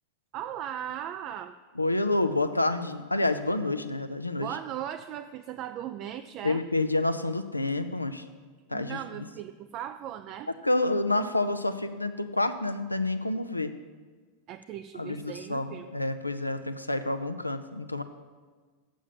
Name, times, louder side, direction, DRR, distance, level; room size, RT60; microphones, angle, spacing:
voice 1, 0.3-1.5 4.4-6.6 8.7-10.5 14.5-15.9, right 10 dB, 40° right, 9 dB, 0.3 m, -38 dB
voice 2, 1.7-4.6 6.4-8.2 8.7-9.3 10.6-13.7 14.9-18.0, left 2 dB, 85° left, 10 dB, 0.5 m, -28 dB
7.2 x 7.0 x 7.4 m, 1.5 s
figure-of-eight pair, 90°, 0 cm